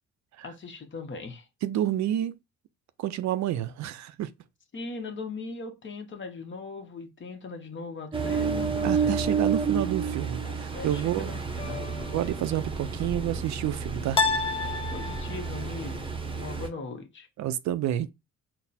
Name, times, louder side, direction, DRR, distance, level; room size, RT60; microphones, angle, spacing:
voice 1, 0.4-1.5 4.7-9.2 10.4-11.9 14.9-17.3, left 4 dB, 40° left, 1.0 m, -39 dB
voice 2, 1.6-2.4 3.0-4.3 8.8-11.3 12.1-14.2 17.4-18.1, right 12 dB, 65° right, 0.4 m, -29 dB
Ocean, 8.1-16.7, right 5 dB, 15° right, 0.7 m, -30 dB
sound 1, 11.6-12.3 14.2-15.6, left 4 dB, 20° left, 0.3 m, -29 dB
4.0 x 2.1 x 4.1 m
cardioid pair, 90°, 30 cm